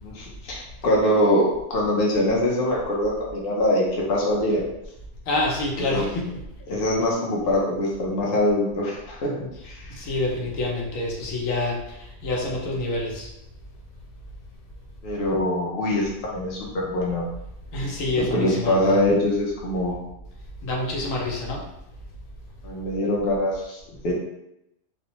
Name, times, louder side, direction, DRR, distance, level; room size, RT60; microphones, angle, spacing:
voice 1, 0.0-3.8 4.1-4.7 5.9-6.0 6.7-9.3 9.6-9.9 15.0-17.3 18.2-19.9 22.6-24.1, left 1 dB, 55° left, -4 dB, 0.8 m, -23 dB
voice 2, 5.3-6.3 10.0-12.0 12.2-13.3 17.7-19.0 20.6-21.6, left 2 dB, 85° left, -1 dB, 1.0 m, -27 dB
2.5 x 2.1 x 2.9 m, 0.83 s
omnidirectional pair, 1.3 m